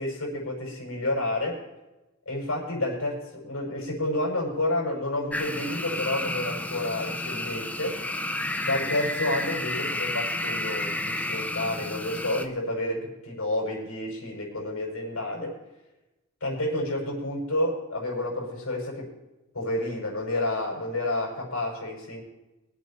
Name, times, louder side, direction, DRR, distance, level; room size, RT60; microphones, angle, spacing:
voice 1, 0.0-1.6 2.3-8.0 8.7-15.5 16.4-19.1 19.5-22.2, left 1 dB, 75° left, -1 dB, 5.8 m, -30 dB
sound 1, 5.3-12.5, left 1 dB, 5° left, 0.7 m, -31 dB
23.5 x 8.5 x 4.4 m, 1.0 s
head